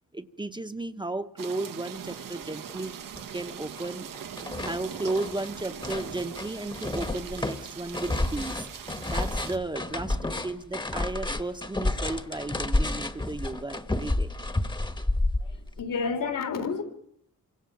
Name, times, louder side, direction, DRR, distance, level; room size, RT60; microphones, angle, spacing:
voice 1, 0.1-2.9 3.3-4.1 4.6-8.7 9.1-14.3, right 2 dB, 15° right, 1.0 m, -34 dB
sound 1, 1.4-9.6, right 8 dB, 90° right, 1.7 m, -41 dB
sound 2, 2.7-2.8 3.1-3.9 4.1-15.8, left 2 dB, 15° left, 1.3 m, -30 dB
voice 2, 15.5-16.8, left 5 dB, 80° left, 3.7 m, -30 dB
28.0 x 25.5 x 7.2 m
wide cardioid pair, 140°, 32 cm